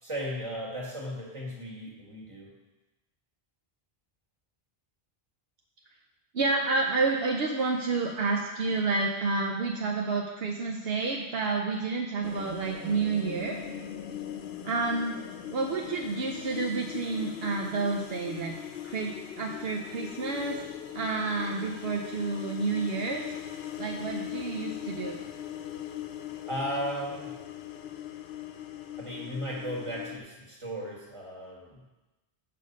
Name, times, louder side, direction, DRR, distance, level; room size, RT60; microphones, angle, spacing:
voice 1, 0.0-2.5 26.5-27.3 29.0-31.8, equal, 30° right, -4 dB, 1.8 m, -36 dB
voice 2, 6.3-13.6 14.6-15.2 15.5-18.5 18.8-20.6 20.9-23.2 23.8-25.2, right 3 dB, 70° right, 1 dB, 0.9 m, -29 dB
sound 1, 12.2-30.2, left 10 dB, 80° left, 0.8 m, -40 dB
6.9 x 5.7 x 5.3 m, 1.1 s
omnidirectional pair, 1.1 m